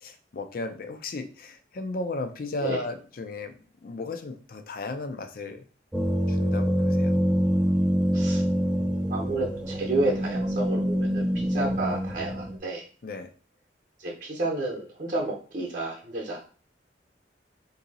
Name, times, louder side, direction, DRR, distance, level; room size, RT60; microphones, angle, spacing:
voice 1, 0.0-3.5 3.8-5.6 6.3-7.2 13.0-13.3, left 3 dB, 55° left, 7 dB, 0.5 m, -35 dB
sound 1, 5.9-12.6, equal, 5° right, 0.4 m, -25 dB
voice 2, 9.1-12.8 14.0-16.4, right 2 dB, 45° right, -1 dB, 0.8 m, -30 dB
2.7 x 2.7 x 4.0 m, 0.39 s
head